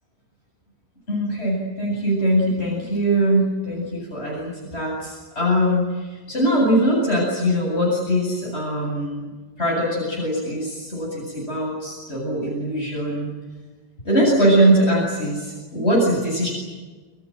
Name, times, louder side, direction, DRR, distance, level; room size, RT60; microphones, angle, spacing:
voice 1, 1.1-9.2 9.6-13.3 14.0-16.5, equal, 85° left, -3 dB, 8.5 m, -21 dB
28.0 x 26.5 x 7.7 m, 1.3 s
omnidirectional pair, 1.1 m